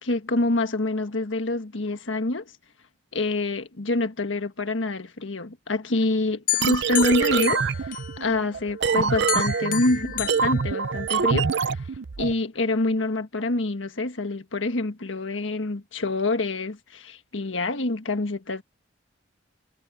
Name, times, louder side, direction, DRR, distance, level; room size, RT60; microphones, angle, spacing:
voice 1, 0.0-2.5 3.1-11.9 12.2-18.6, left 2 dB, 80° left, 1.6 m, -26 dB
sound 1, 6.5-8.4 8.8-11.4, left 12 dB, 45° left, 0.6 m, -32 dB
sound 2, 6.6-12.3, right 6 dB, 65° right, 0.6 m, -25 dB
head